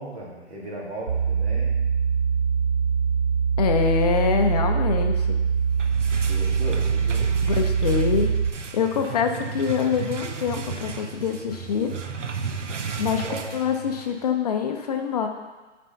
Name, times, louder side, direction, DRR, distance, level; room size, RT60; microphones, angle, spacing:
voice 1, 0.0-1.7 6.3-7.4 13.2-13.5, right 1 dB, 65° right, -4 dB, 2.6 m, -36 dB
sound 1, 1.1-8.5, right 6 dB, 35° right, 0.9 m, -23 dB
voice 2, 3.6-5.4 7.4-8.4 8.7-12.0 13.0-15.3, left 7 dB, 35° left, 4 dB, 0.6 m, -25 dB
sound 2, 5.5-14.2, right 5 dB, 90° right, 0.7 m, -34 dB
6.8 x 5.0 x 5.7 m, 1.3 s
figure-of-eight pair, 135°, 35 cm